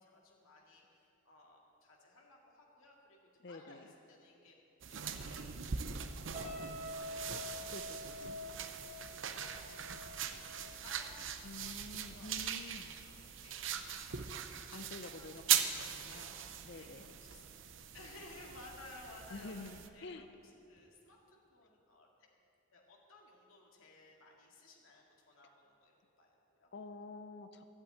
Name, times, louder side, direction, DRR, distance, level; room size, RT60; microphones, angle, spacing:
voice 1, 0.0-4.6 4.9-5.8 6.2-13.6 13.9-14.4 14.7-17.4 17.9-22.3 22.7-26.7, left 2 dB, 80° left, -1 dB, 2.1 m, -59 dB
voice 2, 3.4-3.8 7.7-8.5 11.4-13.0 14.7-17.2 19.3-20.2 26.7-27.6, left 3 dB, 50° left, 8 dB, 0.6 m, -49 dB
sound 1, 4.8-19.9, right 8 dB, 65° right, 0.7 m, -40 dB
sound 2, 6.3-11.6 11.9-12.2, left 1 dB, 30° right, 2.5 m, -47 dB
12.0 x 8.3 x 8.8 m, 2.7 s
head